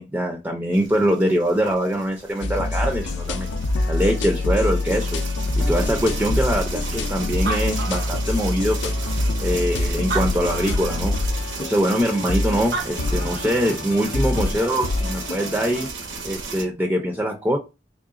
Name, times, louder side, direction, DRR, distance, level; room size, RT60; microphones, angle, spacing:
voice 1, 0.0-3.5 3.9-5.2 5.6-8.9 9.4-11.1 11.6-15.9 16.2-17.6, equal, 10° right, 2 dB, 0.4 m, -23 dB
sound 1, 0.7-16.6, right 4 dB, 85° right, 0.9 m, -35 dB
sound 2, 2.4-15.9, left 2 dB, 70° left, 0.4 m, -25 dB
Animal, 7.5-8.7 9.4-9.5 10.0-11.0 12.4-12.5 12.7-13.7, right 4 dB, 60° right, 0.6 m, -31 dB
3.7 x 3.3 x 2.4 m, 0.27 s
head